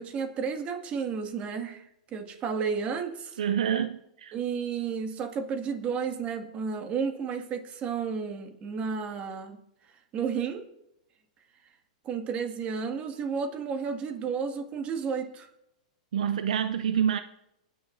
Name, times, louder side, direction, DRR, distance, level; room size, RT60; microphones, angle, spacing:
voice 1, 0.0-1.8 2.1-3.4 4.3-9.6 10.1-10.7 12.1-15.5, right 6 dB, 35° right, 6 dB, 1.9 m, -32 dB
voice 2, 3.4-4.3 16.1-17.2, right 8 dB, 80° right, 10 dB, 0.6 m, -27 dB
28.5 x 9.8 x 2.6 m, 0.83 s
hypercardioid pair, 120°, 4 cm